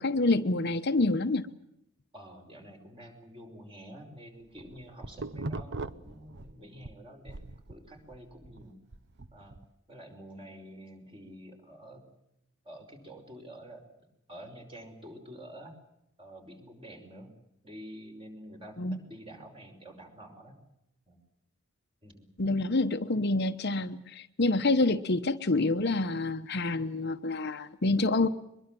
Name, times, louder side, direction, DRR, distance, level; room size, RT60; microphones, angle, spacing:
voice 1, 0.0-1.5 18.8-19.0 22.4-28.3, left 2 dB, 50° left, 8 dB, 1.0 m, -27 dB
voice 2, 2.1-8.8 9.3-9.6 9.9-12.1 12.6-13.8 14.3-15.7 16.2-17.3 17.6-20.6 21.1-21.2 22.0-22.3, equal, 25° right, 4 dB, 5.5 m, -48 dB
sound 1, 4.4-6.9 7.3-9.7, right 2 dB, 55° right, 0.8 m, -40 dB
23.5 x 22.0 x 7.6 m, 0.82 s
head